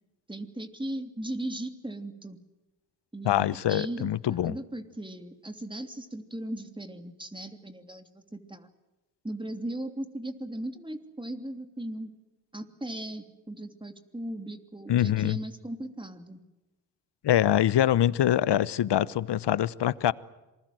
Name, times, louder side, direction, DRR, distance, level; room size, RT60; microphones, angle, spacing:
voice 1, 0.3-2.4 3.1-8.7 9.2-12.1 12.5-16.4, right 1 dB, 10° right, 3.1 m, -38 dB
voice 2, 3.2-4.5 14.9-15.4 17.2-20.1, left 11 dB, 55° left, 1.1 m, -24 dB
27.0 x 21.0 x 7.9 m
supercardioid pair, 65°, 50 cm